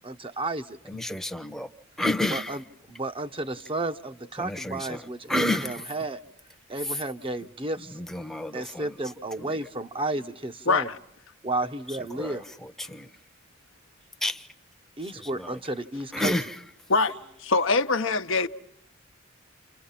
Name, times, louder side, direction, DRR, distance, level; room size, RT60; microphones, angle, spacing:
voice 1, 0.0-0.8 2.3-2.6 2.9-5.4 5.6-6.2 6.7-8.0 8.5-10.9 11.4-12.4 15.0-16.3, right 2 dB, 25° right, 0.9 m, -32 dB
voice 2, 0.8-1.7 2.0-2.6 4.4-5.9 6.8-7.0 7.8-9.0 9.4-9.7 11.9-13.2 14.2-14.5 15.0-15.6 16.1-16.6, left 1 dB, ahead, 0.9 m, -31 dB
voice 3, 17.4-18.5, left 3 dB, 65° left, 0.9 m, -23 dB
29.5 x 29.0 x 5.8 m
head